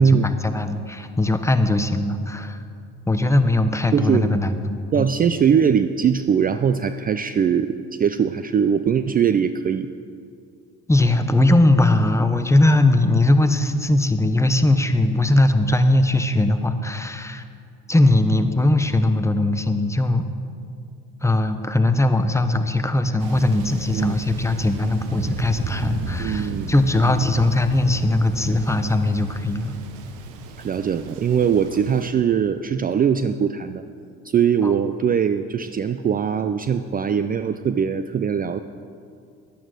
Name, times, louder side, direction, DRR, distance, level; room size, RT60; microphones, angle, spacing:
voice 1, 0.0-2.6 3.1-5.1 10.9-17.4 17.9-20.2 21.2-29.7 34.6-34.7, left 2 dB, 10° left, 8 dB, 0.9 m, -20 dB
voice 2, 3.9-4.3 4.9-9.9 23.9-24.1 26.2-26.7 30.6-33.8 34.2-38.6, right 7 dB, 30° right, 10 dB, 0.4 m, -21 dB
Thunder, 23.2-32.1, right 3 dB, 80° right, 1.0 m, -34 dB
11.5 x 8.9 x 6.2 m, 2.4 s
supercardioid pair, 80°, 30 cm